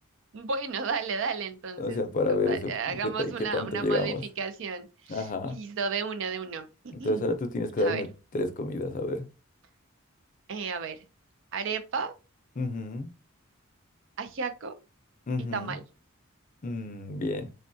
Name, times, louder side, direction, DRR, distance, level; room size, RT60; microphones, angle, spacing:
voice 1, 0.3-2.0 2.3-6.7 7.0-7.2 7.8-8.0 10.5-11.0 11.5-12.1 14.2-14.8 15.5-15.8, right 5 dB, 65° right, 0.5 m, -33 dB
voice 2, 1.8-4.2 5.1-5.6 6.9-8.1 8.3-9.2 12.6-13.2 15.3-15.8 16.6-17.5, left 2 dB, 40° left, 0.5 m, -30 dB
3.4 x 2.2 x 2.6 m
head